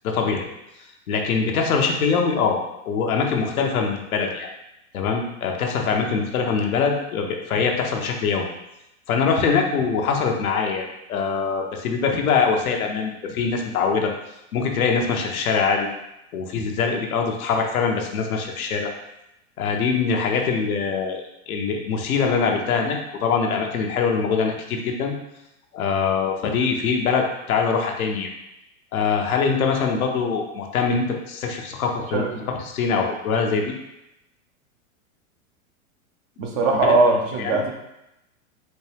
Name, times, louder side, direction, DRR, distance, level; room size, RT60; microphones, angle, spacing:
voice 1, 0.0-0.5 1.1-4.5 4.9-8.5 9.1-14.1 14.5-15.9 16.3-18.9 19.6-25.1 25.7-28.3 28.9-32.2 32.6-33.8 36.7-36.9 37.4-37.6, left 5 dB, 80° left, 2 dB, 0.8 m, -23 dB
voice 2, 32.1-32.5 36.4-37.7, right 3 dB, 30° right, 1 dB, 0.4 m, -20 dB
4.3 x 2.2 x 3.3 m, 0.88 s
hypercardioid pair, 125°, 42 cm